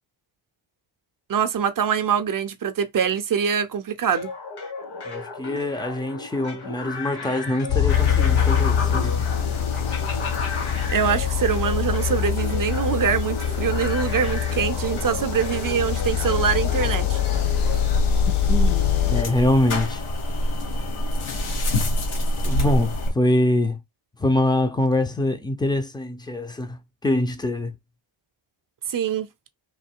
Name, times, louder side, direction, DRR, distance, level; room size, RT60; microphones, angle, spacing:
voice 1, 1.3-4.3 10.9-17.2 28.9-29.3, right 7 dB, 45° right, 0.5 m, -24 dB
sound 1, 4.1-18.0, left 4 dB, 50° left, 1.2 m, -36 dB
voice 2, 5.0-9.3 18.5-20.0 22.4-23.8 24.2-27.7, left 1 dB, 10° left, 0.5 m, -24 dB
sound 2, 7.7-19.2, left 10 dB, 70° left, 0.8 m, -24 dB
sound 3, 7.9-23.1, left 1 dB, 85° left, 1.3 m, -28 dB
3.2 x 2.7 x 4.3 m
wide cardioid pair, 145°, 49 cm